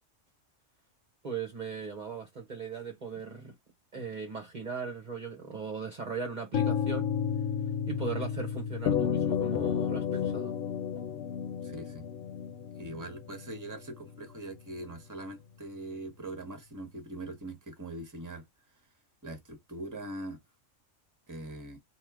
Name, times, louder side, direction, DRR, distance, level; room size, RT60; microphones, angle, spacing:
voice 1, 1.2-3.5 3.9-7.1 7.9-10.6, right 5 dB, 40° right, 1.0 m, -38 dB
sound 1, 6.5-14.4, left 7 dB, 85° left, 1.1 m, -35 dB
sound 2, 8.9-13.5, left 8 dB, 65° left, 0.7 m, -32 dB
voice 2, 11.6-12.1 12.8-18.5 19.2-20.4 21.3-21.8, right 1 dB, 15° right, 1.2 m, -42 dB
3.7 x 2.8 x 4.6 m
omnidirectional pair, 1.3 m